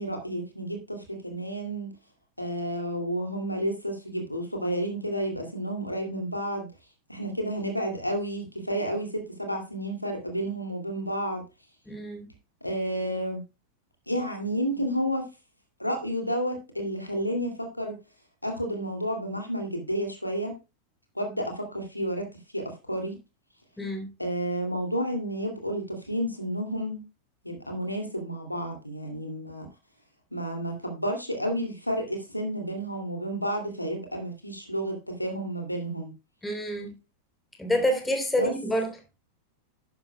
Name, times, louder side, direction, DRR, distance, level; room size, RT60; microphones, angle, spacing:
voice 1, 0.0-1.9 2.4-6.7 7.1-11.4 12.6-13.4 14.1-15.3 15.8-18.0 18.4-20.6 21.1-23.2 24.2-27.0 27.4-29.7 30.3-36.1 38.3-38.5, equal, 85° left, 2.7 m, -31 dB
voice 2, 11.9-12.3 23.8-24.1 36.4-37.0 37.6-38.9, equal, 10° left, 3.7 m, -28 dB
11.0 x 10.5 x 2.3 m
figure-of-eight pair, 90°, 0 cm